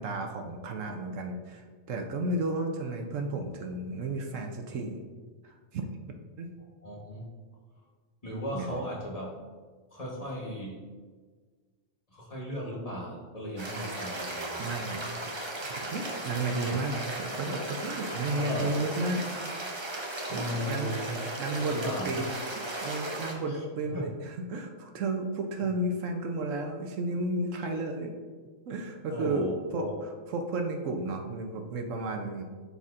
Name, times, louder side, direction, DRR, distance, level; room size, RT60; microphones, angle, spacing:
voice 1, 0.0-5.0 5.4-5.8 6.4-6.5 8.5-8.8 14.6-15.0 15.9-19.2 20.3-22.3 22.6-28.1 28.7-32.4, right 2 dB, 70° right, 4 dB, 1.0 m, -33 dB
voice 2, 6.8-7.2 8.2-9.3 9.9-10.8 12.1-14.5 16.6-16.8 18.3-18.7 20.3-21.1 21.6-22.2 23.5-23.6 23.9-24.0 29.1-29.9, equal, 30° left, -4 dB, 1.2 m, -36 dB
sound 1, 13.6-23.3, right 1 dB, 25° right, 0.7 m, -36 dB
11.5 x 4.2 x 2.5 m, 1.5 s
omnidirectional pair, 1.4 m